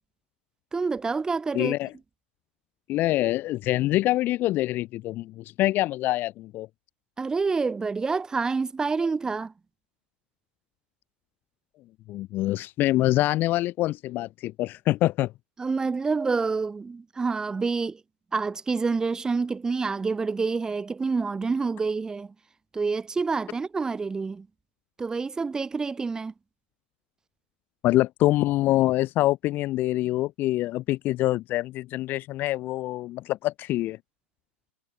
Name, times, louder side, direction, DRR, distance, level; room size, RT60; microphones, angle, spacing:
voice 1, 0.7-1.7 7.2-9.5 15.6-18.0 18.3-22.3 22.7-24.5 25.0-26.3, right 4 dB, 10° right, 1.4 m, -27 dB
voice 2, 1.5-1.9 2.9-6.7 12.1-15.3 27.8-34.0, left 16 dB, 30° left, 0.5 m, -25 dB
supercardioid pair, 145°, 7 cm